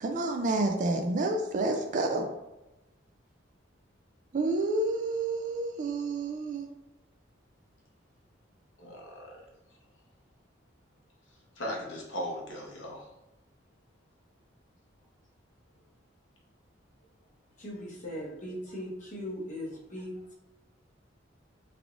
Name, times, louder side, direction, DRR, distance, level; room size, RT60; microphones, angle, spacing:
voice 1, 0.0-2.3 4.3-6.7, right 2 dB, 40° right, 3 dB, 0.3 m, -29 dB
voice 2, 8.8-9.3 11.6-13.0, equal, 85° left, -3 dB, 1.1 m, -37 dB
voice 3, 17.6-20.3, equal, 40° left, -4 dB, 1.0 m, -39 dB
3.5 x 3.4 x 2.4 m, 0.97 s
head